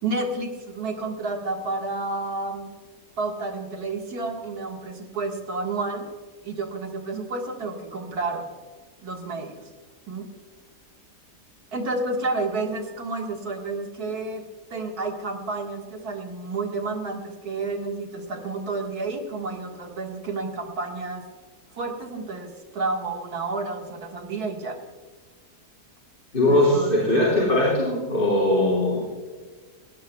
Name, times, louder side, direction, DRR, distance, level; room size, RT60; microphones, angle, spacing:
voice 1, 0.0-2.7 3.2-6.1 6.4-8.5 9.0-9.6 10.1-10.3 11.7-14.4 14.7-21.2 21.7-24.8 26.5-27.3, right 3 dB, 70° right, 2 dB, 2.2 m, -30 dB
voice 2, 26.3-29.0, left 1 dB, 35° left, -6 dB, 4.0 m, -20 dB
19.5 x 17.0 x 2.3 m, 1.4 s
omnidirectional pair, 1.7 m